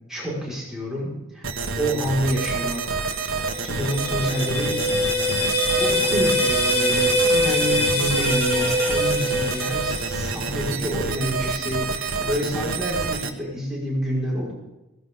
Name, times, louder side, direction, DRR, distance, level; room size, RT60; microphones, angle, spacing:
voice 1, 0.1-1.5 1.8-3.1 3.6-4.8 5.7-14.5, equal, ahead, -7 dB, 5.3 m, -28 dB
sound 1, 1.4-13.3, right 4 dB, 70° right, 1.3 m, -28 dB
Eee Tard, 3.4-10.5, equal, 30° left, 2.9 m, -23 dB
17.5 x 16.0 x 3.9 m, 1.0 s
head